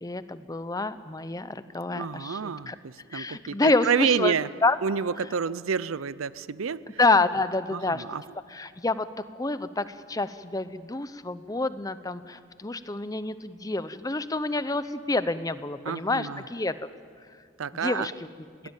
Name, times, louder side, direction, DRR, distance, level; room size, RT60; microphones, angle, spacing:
voice 1, 0.0-2.8 3.1-4.3 4.6-4.8 7.0-8.0 8.5-9.1 9.4-16.7 17.7-18.3, left 2 dB, 15° left, 13 dB, 0.7 m, -28 dB
voice 2, 1.9-4.5 4.8-6.8 7.7-8.2 15.9-16.4 17.6-18.1, right 6 dB, 80° right, 18 dB, 0.6 m, -29 dB
22.5 x 18.0 x 9.0 m, 2.2 s
head